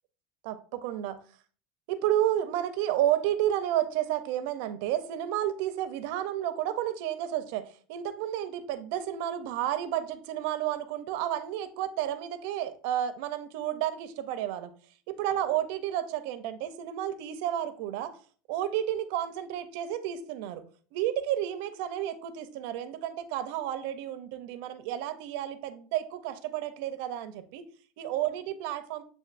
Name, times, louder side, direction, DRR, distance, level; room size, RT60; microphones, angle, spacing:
voice 1, 0.4-1.2 1.9-14.7 15.1-18.1 18.5-20.6 20.9-27.6 28.0-29.0, right 11 dB, 70° right, 11 dB, 0.5 m, -31 dB
7.7 x 2.6 x 2.5 m, 0.42 s
supercardioid pair, 140°, 0 cm